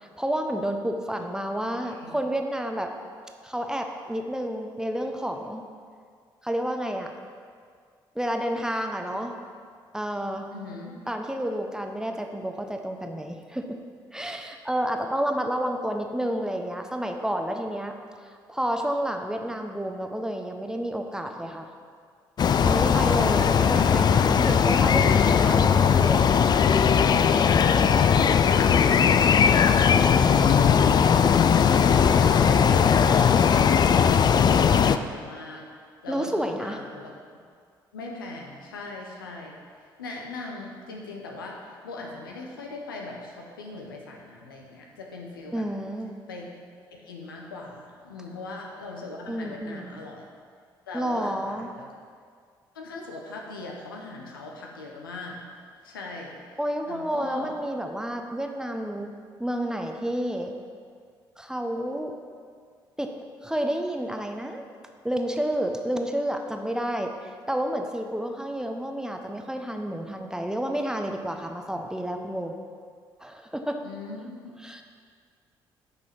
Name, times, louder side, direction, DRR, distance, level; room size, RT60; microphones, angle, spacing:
voice 1, 0.2-2.9 3.4-5.6 6.4-7.1 8.1-9.3 9.9-10.5 11.1-13.8 14.1-17.9 18.2-21.7 22.6-26.3 36.1-36.8 45.5-46.1 49.3-50.0 50.9-51.7 56.6-60.6 61.4-62.1 63.0-63.1 63.4-64.6 65.0-67.1 67.5-72.5 73.2-73.8 74.6-74.8, equal, 5° right, 4 dB, 0.9 m, -30 dB
voice 2, 10.5-11.0 31.9-35.7 36.0-37.1 37.9-45.7 46.3-46.5 46.9-50.2 50.9-51.9 52.7-55.4 55.8-56.6 56.9-57.5 73.8-74.4, left 3 dB, 80° left, 0 dB, 1.0 m, -40 dB
sound 1, 22.4-35.0, left 7 dB, 40° left, 0.4 m, -19 dB
9.2 x 5.9 x 5.8 m, 2.1 s
figure-of-eight pair, 45°, 11 cm